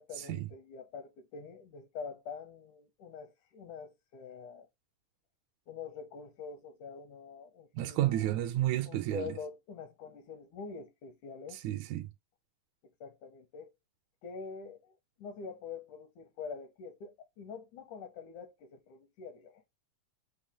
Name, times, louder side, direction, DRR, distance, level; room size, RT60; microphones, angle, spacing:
voice 1, 0.0-4.7 5.7-8.3 8.8-11.6 13.0-13.7 14.2-19.7, left 5 dB, 80° left, 2.4 m, -45 dB
voice 2, 7.7-9.4 11.6-12.1, right 14 dB, 80° right, 1.8 m, -31 dB
5.6 x 2.3 x 3.5 m
omnidirectional pair, 3.5 m